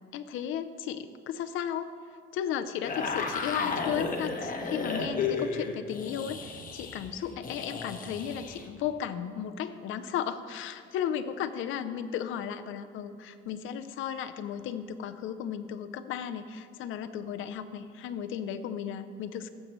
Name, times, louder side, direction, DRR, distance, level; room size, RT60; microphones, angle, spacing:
voice 1, 0.1-1.9 2.3-19.5, left 9 dB, 85° left, 10 dB, 0.6 m, -35 dB
sound 1, 2.8-8.6, left 4 dB, 45° left, 1.2 m, -33 dB
18.0 x 7.5 x 3.1 m, 2.1 s
cardioid pair, 90°, 20 cm